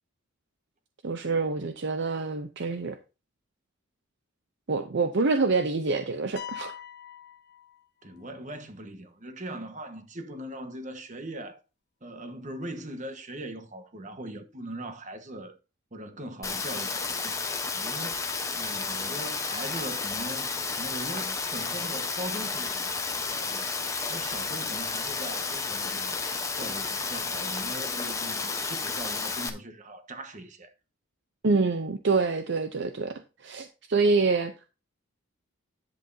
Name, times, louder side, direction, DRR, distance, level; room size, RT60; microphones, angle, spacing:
voice 1, 1.0-3.0 4.7-6.7 31.4-34.7, right 3 dB, 55° right, 0.6 m, -26 dB
sound 1, 6.4-8.3, left 10 dB, 50° left, 0.9 m, -42 dB
voice 2, 8.0-11.6 12.0-15.6 15.9-23.8 24.1-26.2 26.5-30.7, right 1 dB, 35° right, 1.3 m, -40 dB
Rain, 16.4-29.5, left 4 dB, 15° left, 0.9 m, -32 dB
10.5 x 8.0 x 2.7 m
head